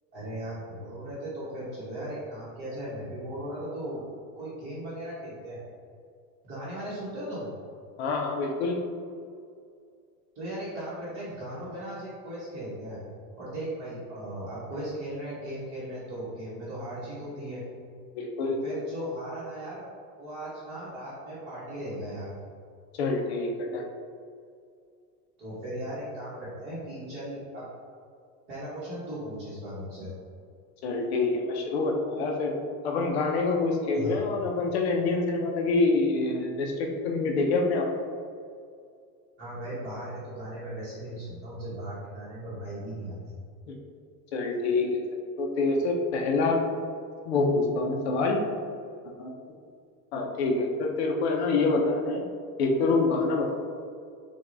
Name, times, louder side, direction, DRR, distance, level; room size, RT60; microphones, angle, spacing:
voice 1, 0.1-4.0 4.4-5.6 6.4-7.5 10.3-13.0 13.4-17.6 18.4-19.8 20.2-22.3 25.4-27.7 28.5-30.1 33.9-34.2 39.4-43.4, right 1 dB, 25° right, -11 dB, 0.9 m, -37 dB
voice 2, 8.0-8.8 18.1-18.6 23.0-23.9 30.8-32.5 32.8-37.8 43.7-43.8 44.3-45.0 45.4-46.6 47.3-48.4 49.2-49.3 50.1-52.2 52.6-53.5, left 3 dB, 45° left, 1 dB, 0.5 m, -26 dB
6.0 x 2.2 x 2.5 m, 2.3 s
supercardioid pair, 175°, 47 cm